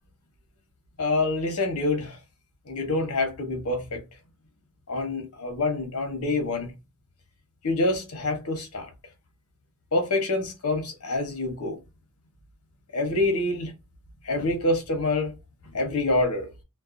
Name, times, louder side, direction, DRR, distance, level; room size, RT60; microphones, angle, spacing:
voice 1, 1.0-2.2 2.7-4.0 4.9-6.7 7.6-8.9 9.9-11.8 12.9-13.7 14.2-15.3 15.7-16.5, left 2 dB, 80° left, 1.0 m, -26 dB
2.5 x 2.2 x 2.5 m
head